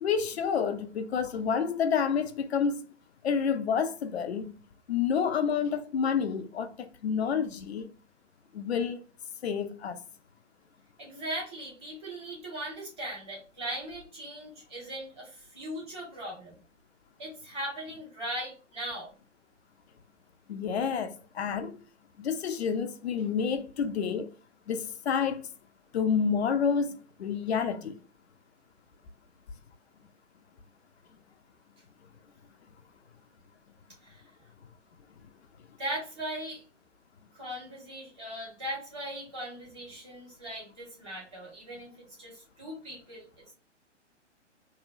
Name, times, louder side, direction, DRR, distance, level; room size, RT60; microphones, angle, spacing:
voice 1, 0.0-2.8 3.2-4.5 4.9-7.9 8.5-9.0 9.4-10.0 20.5-21.8 22.2-24.3 24.7-25.5 25.9-28.0, left 6 dB, 60° left, 0.5 m, -29 dB
voice 2, 11.0-16.5 17.2-19.1 34.0-34.2 35.8-36.6 37.3-43.5, right 1 dB, ahead, 0.3 m, -39 dB
2.8 x 2.1 x 2.5 m
figure-of-eight pair, 120°, 37 cm